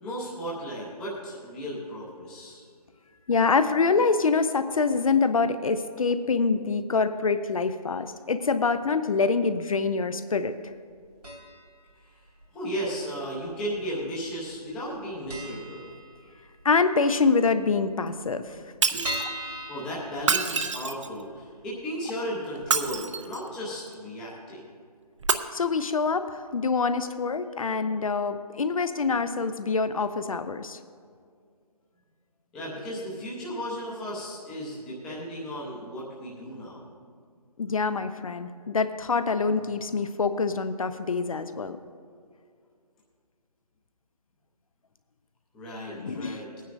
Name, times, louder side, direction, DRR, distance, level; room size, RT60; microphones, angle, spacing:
voice 1, 0.0-2.6 12.5-15.9 18.9-24.6 32.5-36.8 45.5-46.5, equal, 5° left, -7 dB, 0.6 m, -35 dB
voice 2, 3.3-10.6 16.6-18.6 25.5-30.8 37.6-41.8 45.9-46.4, left 4 dB, 60° left, 11 dB, 0.5 m, -25 dB
sound 1, 11.2-11.8 12.0-12.1 13.1-13.8 14.0-14.2 14.5-14.6 14.9-15.0 15.3-16.6 17.0-17.1 17.4-17.5 17.6-17.7 18.2-20.9 21.3-21.4 21.8-21.9, right 1 dB, 75° right, 2.4 m, -37 dB
Shatter, 18.8-19.2 20.2-21.2 22.6-23.5 25.2-25.3, right 5 dB, 50° right, 0.5 m, -26 dB
18.5 x 9.3 x 2.5 m, 2.2 s
figure-of-eight pair, 165°, 20 cm